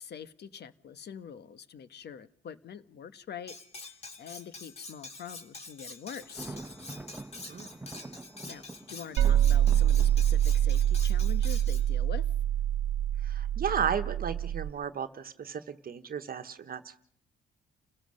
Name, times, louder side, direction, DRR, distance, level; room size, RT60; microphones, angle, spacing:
voice 1, 0.0-3.5 4.2-6.6 8.5-12.2, left 7 dB, 55° left, 1.3 m, -44 dB
Cutlery silverware, 3.5-11.9, left 3 dB, 30° left, 3.5 m, -46 dB
Thunder, 6.2-12.0, right 2 dB, 10° right, 1.2 m, -46 dB
sound 1, 9.2-14.7, right 11 dB, 90° right, 1.0 m, -25 dB
voice 2, 13.2-17.0, right 7 dB, 50° right, 1.3 m, -34 dB
29.5 x 16.5 x 6.5 m
cardioid pair, 90°, 20 cm